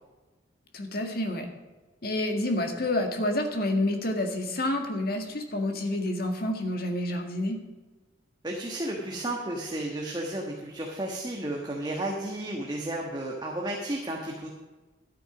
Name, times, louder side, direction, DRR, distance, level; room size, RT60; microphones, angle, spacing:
voice 1, 0.7-1.5 2.0-7.6, left 1 dB, 50° left, 4 dB, 1.9 m, -28 dB
voice 2, 8.4-14.5, right 1 dB, 20° right, -1 dB, 1.4 m, -33 dB
12.5 x 9.2 x 5.9 m, 1.2 s
head